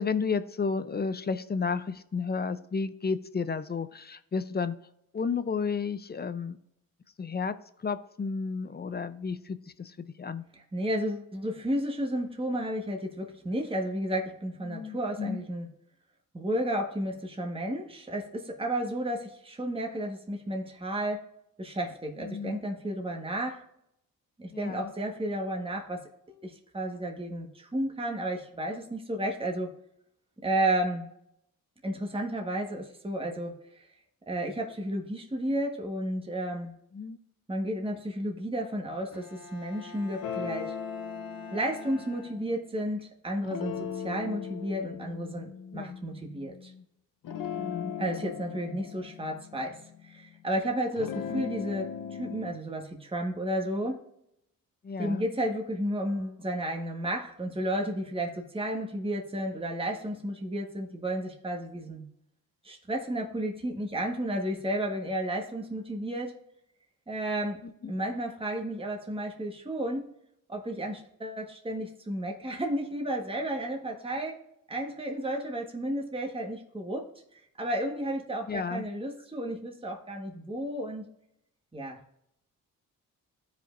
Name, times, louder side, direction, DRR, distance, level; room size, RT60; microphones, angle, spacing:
voice 1, 0.0-4.8 5.1-6.6 7.2-7.6 7.8-10.4 14.6-15.4 22.2-22.6 24.5-24.9 36.9-37.2 45.7-46.0 47.5-48.0 51.3-51.5 54.8-55.3 67.6-67.9 78.5-78.9, left 5 dB, 25° left, 13 dB, 0.6 m, -32 dB
voice 2, 10.5-15.7 16.3-21.3 21.6-23.6 24.4-29.7 30.4-31.1 31.8-33.9 34.3-36.7 37.5-40.7 41.5-46.7 48.0-54.0 55.0-62.0 62.6-66.4 67.1-67.6 67.9-70.1 70.5-74.4 74.7-81.0 81.7-82.0, right 1 dB, 15° right, 1 dB, 1.4 m, -32 dB
Bowed string instrument, 39.1-42.8, left 3 dB, 50° left, 1.7 m, -48 dB
sound 1, 40.2-42.9 43.4-46.8 47.2-50.4 50.9-52.5, left 7 dB, 65° left, 0.8 m, -39 dB
13.0 x 5.1 x 2.6 m, 0.78 s
cardioid pair, 65°, 36 cm